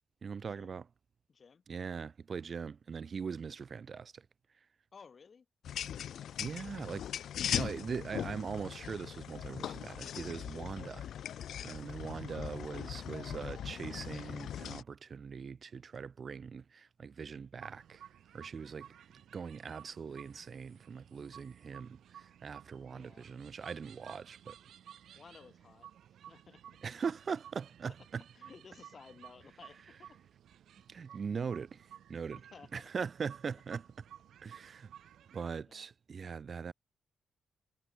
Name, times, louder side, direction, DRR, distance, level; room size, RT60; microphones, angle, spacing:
voice 1, 0.2-0.8 1.7-4.2 6.4-7.1 7.5-11.1 11.6-18.0 18.3-18.9 19.3-24.6 26.8-28.2 30.9-32.4 32.7-33.9 34.4-34.9 35.3-36.7, right 6 dB, 45° right, 1.2 m, -41 dB
voice 2, 1.3-1.6 4.9-5.5 7.8-8.0 12.2-12.6 22.8-23.3 25.1-25.9 26.3-26.8 28.3-30.2 32.5-32.9 35.6-35.9, left 5 dB, 40° left, 2.8 m, -56 dB
sound 1, 5.6-14.8, left 9 dB, 75° left, 0.4 m, -40 dB
sound 2, 17.6-35.5, right 10 dB, 85° right, 3.1 m, -56 dB
wide cardioid pair, 130°, 0 cm